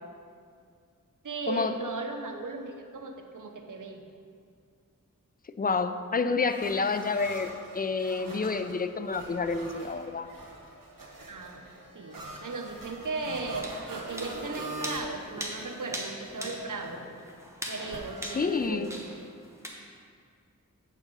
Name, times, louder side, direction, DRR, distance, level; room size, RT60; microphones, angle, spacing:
voice 1, 1.2-4.0 11.3-11.6 11.9-17.0 17.7-19.0, right 3 dB, 65° right, 4 dB, 0.8 m, -37 dB
voice 2, 5.6-10.3 18.3-18.9, left 4 dB, 30° left, 10 dB, 0.4 m, -29 dB
sound 1, 6.5-15.9 16.2-17.1 17.9-18.7, right 2 dB, 85° right, 1.4 m, -43 dB
sound 2, 13.3-19.7, equal, 10° right, 1.2 m, -41 dB
7.8 x 4.8 x 5.4 m, 2.2 s
wide cardioid pair, 45°, 33 cm